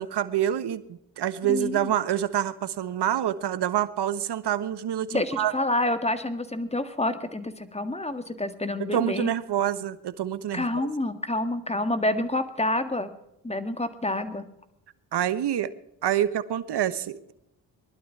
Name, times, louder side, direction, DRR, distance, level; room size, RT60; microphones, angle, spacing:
voice 1, 0.0-5.5 8.8-10.9 15.1-15.7 16.0-17.3, right 11 dB, 60° right, 15 dB, 1.2 m, -27 dB
voice 2, 1.4-1.9 5.1-9.3 10.5-13.1 13.4-14.5, left 2 dB, 15° left, 10 dB, 1.8 m, -28 dB
20.0 x 12.0 x 4.7 m, 0.81 s
supercardioid pair, 55°, 45 cm